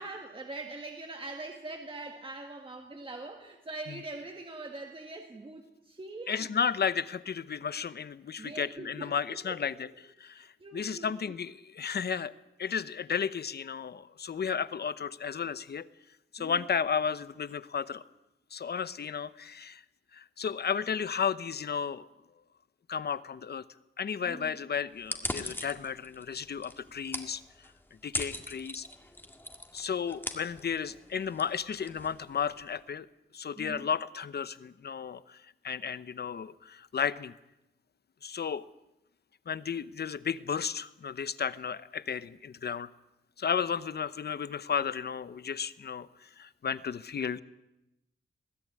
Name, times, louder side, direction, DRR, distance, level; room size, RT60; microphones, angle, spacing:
voice 1, 0.0-6.5 8.4-9.2 9.4-9.9 10.4-11.3 16.4-16.7 24.3-24.6 33.6-33.9, right 2 dB, 25° right, 3 dB, 1.9 m, -43 dB
voice 2, 6.3-9.9 10.2-12.3 12.6-15.9 16.3-18.0 18.5-19.8 20.1-22.1 22.9-23.6 24.0-27.4 28.0-28.9 29.7-33.1 33.3-35.4 35.6-37.3 38.2-38.6 39.5-42.9 43.4-47.4, left 7 dB, 55° left, 15 dB, 0.9 m, -33 dB
sound 1, 25.0-32.7, left 1 dB, 10° left, 1.9 m, -41 dB
21.5 x 17.0 x 9.7 m, 0.91 s
wide cardioid pair, 155°, 19 cm